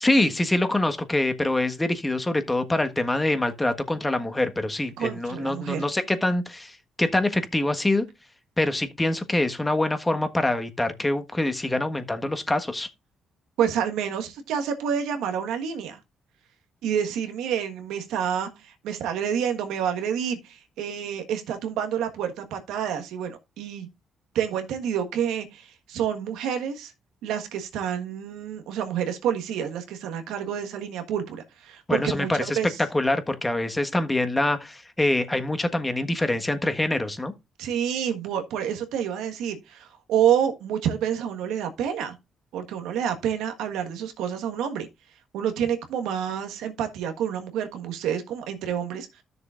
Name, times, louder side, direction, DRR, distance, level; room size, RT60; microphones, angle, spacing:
voice 1, 0.0-8.0 8.6-12.9 31.9-32.6 32.9-37.3, left 1 dB, 15° left, 1.4 m, -25 dB
voice 2, 5.0-5.9 13.6-16.0 16.8-23.9 24.3-26.9 27.2-32.8 37.6-42.1 42.5-44.9 45.3-49.2, right 8 dB, 85° right, 1.4 m, -28 dB
13.0 x 6.8 x 2.5 m
supercardioid pair, 60°, 0 cm